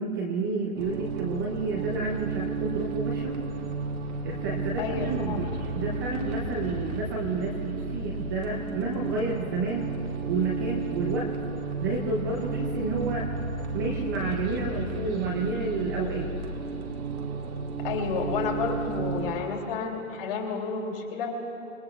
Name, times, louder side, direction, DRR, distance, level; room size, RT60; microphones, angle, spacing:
voice 1, 0.0-3.4 4.2-5.5 5.7-9.9 10.3-11.3 11.8-13.3 13.7-16.3, right 3 dB, 15° right, -1 dB, 0.7 m, -30 dB
sound 1, 0.7-19.3, right 3 dB, 85° right, 2.5 m, -33 dB
voice 2, 4.8-5.4 17.8-21.3, left 5 dB, 40° left, 0 dB, 3.1 m, -31 dB
27.5 x 21.5 x 2.4 m, 3.0 s
hypercardioid pair, 160°, 42 cm